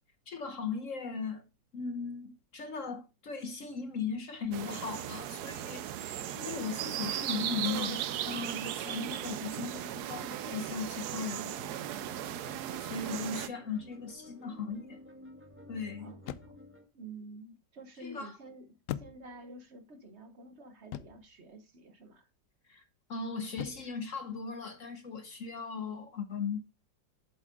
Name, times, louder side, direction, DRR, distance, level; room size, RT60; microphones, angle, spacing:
voice 1, 0.3-1.4 1.7-11.5 12.8-15.0 15.7-16.1 18.0-18.4 22.7-22.8 23.1-26.6, left 5 dB, 50° left, 1.1 m, -38 dB
sound 1, 4.5-13.5, right 11 dB, 70° right, 1.1 m, -37 dB
sound 2, 11.4-16.9, left 1 dB, 5° right, 1.3 m, -52 dB
sound 3, 13.8-14.1 16.2-16.8 18.9-19.6 20.9-21.4 23.6-24.0, left 11 dB, 85° left, 0.7 m, -42 dB
voice 2, 16.0-16.6 16.9-22.3, right 2 dB, 40° right, 1.3 m, -50 dB
8.1 x 7.4 x 3.7 m
omnidirectional pair, 2.0 m